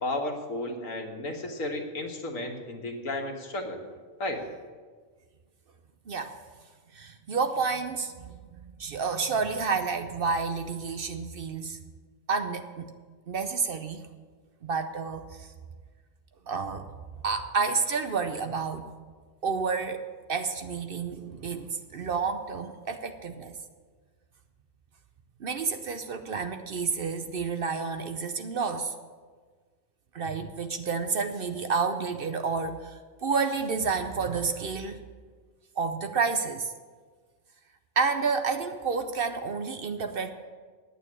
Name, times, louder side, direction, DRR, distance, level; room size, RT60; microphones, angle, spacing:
voice 1, 0.0-3.8 4.2-4.4, left 2 dB, 85° left, 3 dB, 1.8 m, -33 dB
voice 2, 6.9-8.4 8.8-11.8 12.3-12.9 13.3-14.0 14.6-15.5 16.5-16.9 17.2-18.9 19.4-20.0 20.3-23.5 25.4-28.9 30.1-35.0 35.8-36.7 38.0-40.3, right 5 dB, 55° right, 8 dB, 0.8 m, -30 dB
9.4 x 8.8 x 8.6 m, 1.5 s
omnidirectional pair, 1.3 m